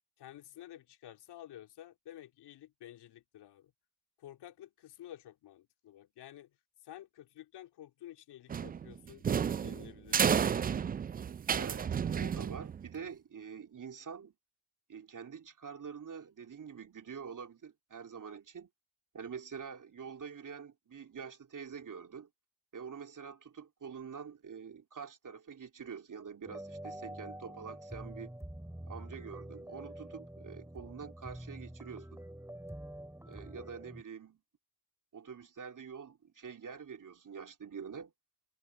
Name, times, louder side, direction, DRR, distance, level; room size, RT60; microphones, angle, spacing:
voice 1, 0.2-3.7 4.2-6.6 6.8-11.0, left 12 dB, 80° left, 3.2 m, -52 dB
sound 1, 8.5-13.0, right 7 dB, 25° right, 0.3 m, -31 dB
voice 2, 11.5-11.9 12.1-14.3 14.9-18.7 19.1-22.3 22.7-28.3 28.9-32.2 33.3-34.4 35.1-38.1, right 6 dB, 50° right, 3.2 m, -46 dB
sound 2, 26.4-34.0, right 1 dB, 5° right, 3.4 m, -46 dB
supercardioid pair, 45°, 40 cm